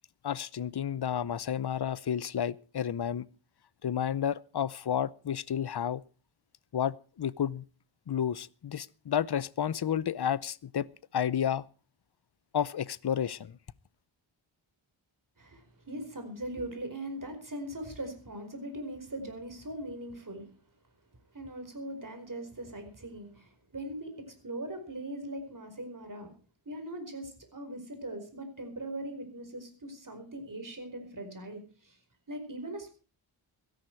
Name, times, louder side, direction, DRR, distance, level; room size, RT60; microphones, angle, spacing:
voice 1, 0.2-3.3 3.8-6.0 6.7-7.6 8.1-10.9 11.1-11.7 12.5-13.6, left 9 dB, 50° left, 0.7 m, -31 dB
voice 2, 15.4-20.5 21.3-26.3 26.6-32.0 32.3-32.9, right 1 dB, 40° right, 4.8 m, -40 dB
17.0 x 13.5 x 4.6 m
wide cardioid pair, 95°, 49 cm